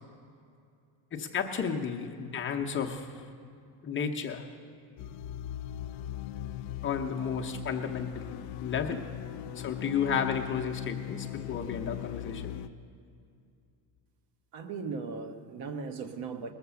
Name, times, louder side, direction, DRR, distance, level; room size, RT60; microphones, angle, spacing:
voice 1, 1.1-3.2 3.8-4.5 6.8-9.1 9.6-12.5, left 6 dB, 25° left, 2 dB, 0.7 m, -33 dB
sound 1, 5.0-12.7, left 12 dB, 65° left, 0.5 m, -39 dB
voice 2, 14.5-16.5, right 5 dB, 65° right, 7 dB, 1.2 m, -38 dB
20.0 x 7.2 x 6.9 m, 2.4 s
cardioid pair, 170°, 45 cm